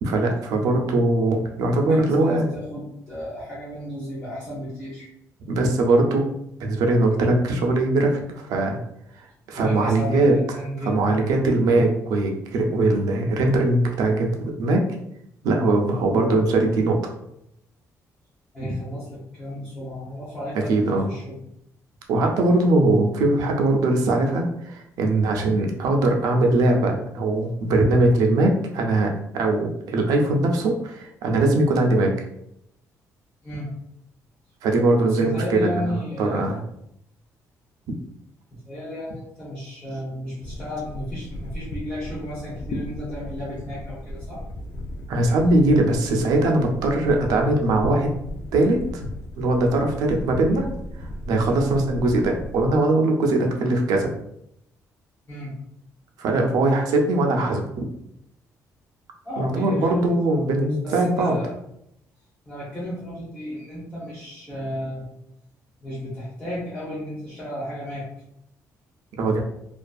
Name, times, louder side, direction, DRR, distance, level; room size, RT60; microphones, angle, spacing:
voice 1, 0.0-2.5 5.5-6.3 6.6-8.8 9.2-10.6 10.8-14.8 15.4-17.1 18.7-18.8 20.5-21.1 22.1-32.1 34.6-36.6 45.1-48.1 48.5-49.0 49.4-50.7 51.0-54.1 56.2-57.9 59.4-61.4 69.2-69.4, right 2 dB, 85° right, 2 dB, 0.5 m, -21 dB
voice 2, 1.9-5.1 9.5-11.4 18.5-21.4 33.4-33.7 35.0-36.5 38.5-44.4 55.3-55.5 59.2-61.5 62.5-65.1 65.8-68.1, left 1 dB, 15° left, -8 dB, 0.7 m, -33 dB
sound 1, 40.4-52.8, left 1 dB, 45° left, 0.4 m, -35 dB
2.5 x 2.3 x 2.3 m, 0.78 s
cardioid pair, 170°, 6 cm